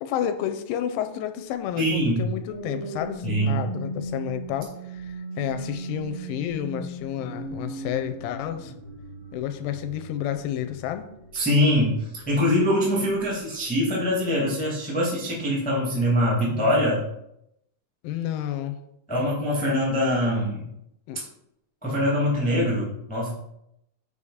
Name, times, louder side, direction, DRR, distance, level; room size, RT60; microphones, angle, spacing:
voice 1, 0.0-8.7 9.3-11.2 18.0-18.8 21.1-21.2, left 10 dB, 85° left, 8 dB, 2.3 m, -30 dB
voice 2, 1.8-2.2 3.2-3.6 11.3-17.0 19.1-20.7 21.8-23.3, equal, 5° left, -5 dB, 1.3 m, -23 dB
sound 1, 2.3-12.6 13.1-13.4, right 2 dB, 30° left, 1.3 m, -38 dB
7.0 x 5.0 x 5.0 m, 0.79 s
omnidirectional pair, 4.1 m